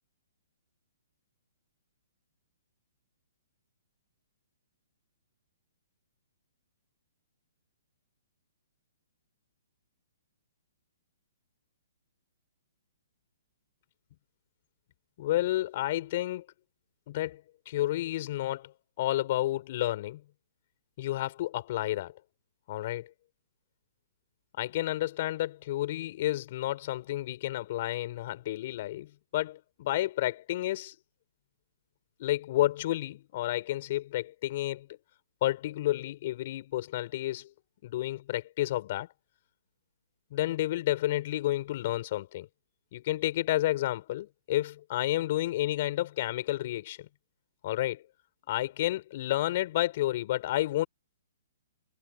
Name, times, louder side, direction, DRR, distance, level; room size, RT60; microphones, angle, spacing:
voice 1, 15.2-16.4 17.1-18.7 19.0-20.2 21.0-22.1 22.7-23.1 24.6-30.9 32.2-34.9 35.4-37.5 37.8-39.1 40.3-42.5 42.9-47.1 47.6-48.0 48.5-50.9, left 15 dB, 45° left, 4.9 m, -31 dB
hypercardioid pair, 140°, 0 cm